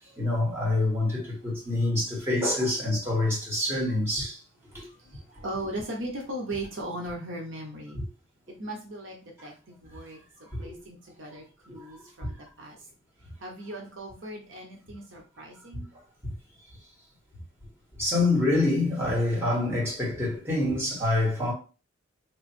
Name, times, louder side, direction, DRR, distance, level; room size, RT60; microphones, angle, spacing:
voice 1, 0.2-4.4 4.7-4.8 7.9-8.0 10.5-10.7 11.7-11.8 12.2-12.3 16.2-16.3 18.0-21.5, left 2 dB, 10° right, 1.6 m, -26 dB
voice 2, 4.9-8.0 8.5-10.2 10.6-12.8 13.4-15.9, right 1 dB, 70° right, 0.9 m, -38 dB
3.3 x 2.5 x 4.2 m
head